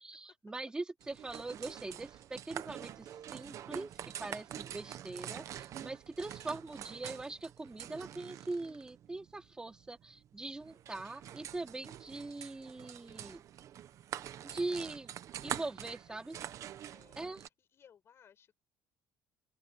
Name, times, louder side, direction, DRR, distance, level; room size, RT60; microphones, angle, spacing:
voice 1, 0.0-13.4 14.4-15.1 15.4-16.4 17.2-17.4, right 2 dB, 10° right, 3.0 m, -42 dB
sound 1, 1.0-17.5, right 11 dB, 45° right, 1.0 m, -46 dB
voice 2, 7.9-8.4 10.6-11.1 16.1-16.6 16.9-18.6, left 8 dB, 35° left, 6.6 m, -65 dB
open air
cardioid pair, 170°, 7 cm